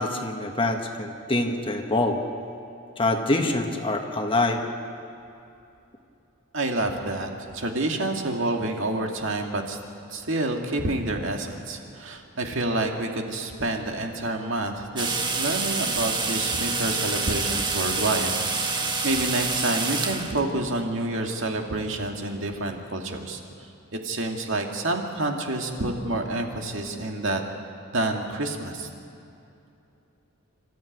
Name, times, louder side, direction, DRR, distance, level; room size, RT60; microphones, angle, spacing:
voice 1, 0.0-2.2 3.0-4.6, left 2 dB, 25° left, 4 dB, 1.5 m, -25 dB
voice 2, 6.5-9.8 10.1-18.3 18.7-23.4 23.9-27.4 27.9-28.9, right 2 dB, 60° right, 2 dB, 2.2 m, -28 dB
sound 1, 15.0-20.4, right 4 dB, 20° right, 1.4 m, -27 dB
27.5 x 13.5 x 9.4 m, 2.7 s
head